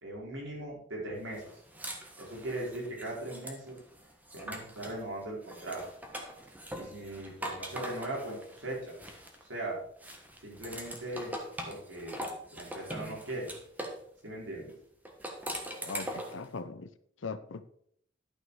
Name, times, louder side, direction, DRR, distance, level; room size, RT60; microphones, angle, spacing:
voice 1, 0.0-1.4 2.2-3.8 4.3-5.8 6.7-8.9 9.5-9.8 10.4-11.3 11.7-12.1 12.5-13.5 14.2-14.7, right 1 dB, 90° right, 4.4 m, -39 dB
sound 1, 1.3-5.0 5.4-9.6 10.0-14.0 15.0-16.4, equal, 10° right, 1.3 m, -42 dB
voice 2, 15.8-16.9 17.2-17.7, left 4 dB, 85° left, 0.7 m, -40 dB
11.5 x 6.3 x 4.8 m
head